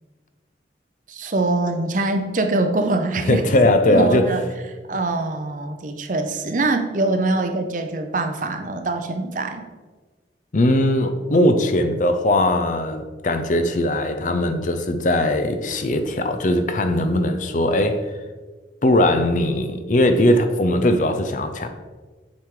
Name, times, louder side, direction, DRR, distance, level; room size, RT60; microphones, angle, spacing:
voice 1, 1.1-4.4 4.9-9.7, right 2 dB, 45° right, 6 dB, 0.6 m, -24 dB
voice 2, 3.3-4.2 10.5-18.0 18.8-21.7, left 1 dB, 45° left, 8 dB, 0.5 m, -19 dB
7.4 x 4.8 x 3.8 m, 1.3 s
head